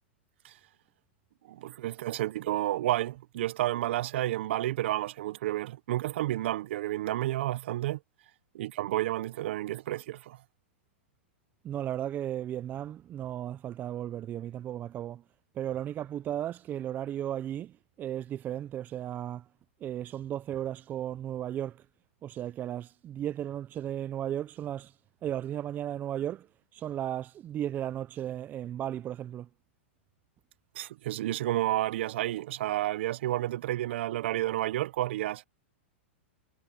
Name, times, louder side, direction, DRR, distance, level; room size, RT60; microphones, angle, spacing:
voice 1, 1.5-8.0 8.5-10.4 30.7-35.4, right 14 dB, 65° right, 0.8 m, -31 dB
voice 2, 11.6-15.2 15.5-19.5 19.8-21.8 22.2-24.9 25.2-26.5 26.7-29.5, right 11 dB, 25° right, 0.6 m, -35 dB
hypercardioid pair, 125°, 7 cm